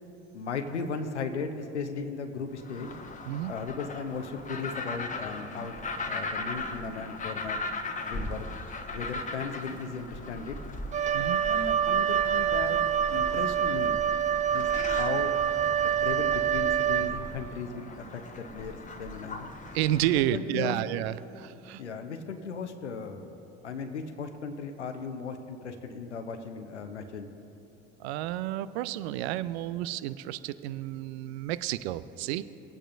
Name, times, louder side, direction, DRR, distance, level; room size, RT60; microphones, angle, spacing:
voice 1, 0.3-2.9 3.5-7.6 8.1-8.5 8.9-10.6 11.5-12.8 13.1-14.0 14.5-15.4 16.0-19.5 20.1-20.8 21.8-23.3 23.6-27.3, left 5 dB, 90° left, 6 dB, 0.7 m, -36 dB
sound 1, 2.6-20.3, left 2 dB, 20° left, 1.2 m, -39 dB
Wind instrument woodwind instrument, 10.9-17.5, right 9 dB, 20° right, 0.5 m, -26 dB
voice 2, 11.1-11.4 19.7-21.8 28.0-32.4, right 13 dB, 70° right, 15 dB, 0.5 m, -31 dB
20.5 x 8.8 x 2.6 m, 2.9 s
hypercardioid pair, 70°, 34 cm